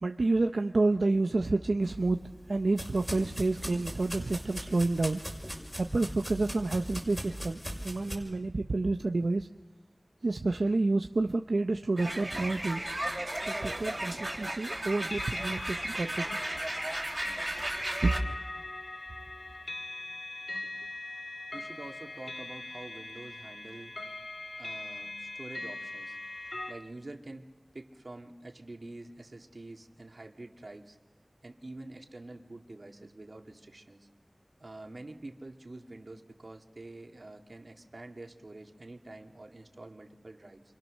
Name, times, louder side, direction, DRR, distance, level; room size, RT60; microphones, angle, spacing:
voice 1, 0.0-5.2 5.7-9.5 10.2-12.9 13.5-16.5 18.0-18.1, right 2 dB, 90° right, 5 dB, 0.8 m, -29 dB
sound 1, 1.8-8.1, equal, 5° left, 6.3 m, -40 dB
sound 2, 12.0-18.2, right 1 dB, 25° right, 3.5 m, -35 dB
sound 3, 13.3-13.4 15.0-26.7, left 2 dB, 60° left, 1.8 m, -41 dB
voice 2, 21.5-24.0 24.6-26.2 26.7-27.5 27.7-31.0 31.4-34.1 34.6-40.6, right 2 dB, 65° right, 3 dB, 2.4 m, -47 dB
28.5 x 25.5 x 6.5 m, 1.1 s
wide cardioid pair, 50°, 0 cm